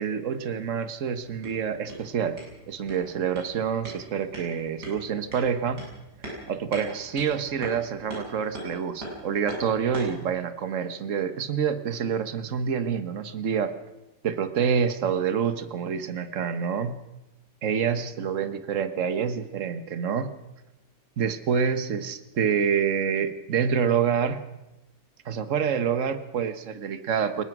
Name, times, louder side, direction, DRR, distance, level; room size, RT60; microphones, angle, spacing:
voice 1, 0.0-2.4 2.7-5.8 6.5-13.7 14.2-17.0 17.6-20.3 21.2-24.4 25.2-27.4, right 7 dB, 50° right, 11 dB, 1.6 m, -27 dB
sound 1, 1.2-10.2, right 1 dB, 80° right, 8.5 m, -42 dB
23.0 x 20.0 x 6.1 m, 0.95 s
omnidirectional pair, 1.7 m